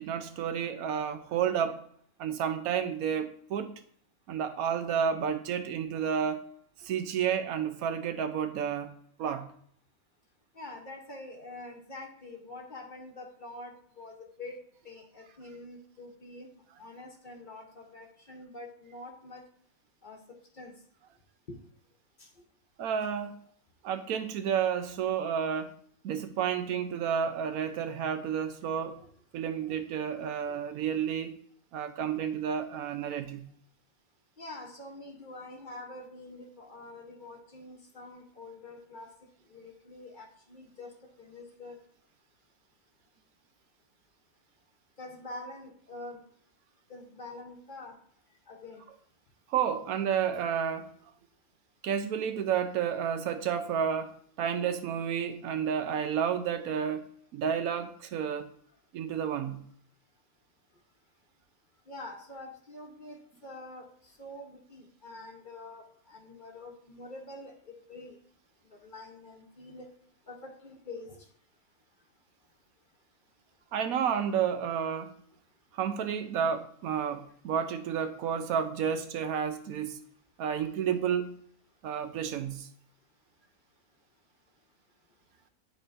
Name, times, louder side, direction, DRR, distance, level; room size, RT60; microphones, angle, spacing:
voice 1, 0.0-1.8 2.2-3.7 4.3-6.5 6.8-8.9 9.2-9.5 22.8-23.4 23.8-25.7 26.0-29.0 29.3-31.4 31.7-33.4 49.5-50.9 51.8-54.1 54.4-58.5 58.9-59.6 73.7-75.1 75.7-80.0 80.4-81.4 81.8-82.7, right 8 dB, 90° right, 1.1 m, -31 dB
voice 2, 10.5-14.6 14.8-16.5 16.8-19.4 20.0-20.2 20.5-20.7 21.5-21.6 22.2-22.3 29.6-29.8 30.5-30.6 34.4-39.1 39.5-40.9 41.2-41.8 45.0-46.2 46.9-47.9 48.5-48.8 61.9-63.9 64.2-67.5 67.9-68.2 68.8-69.9 70.3-71.2, left 2 dB, 40° left, 1.0 m, -45 dB
10.5 x 4.1 x 2.6 m
omnidirectional pair, 1.5 m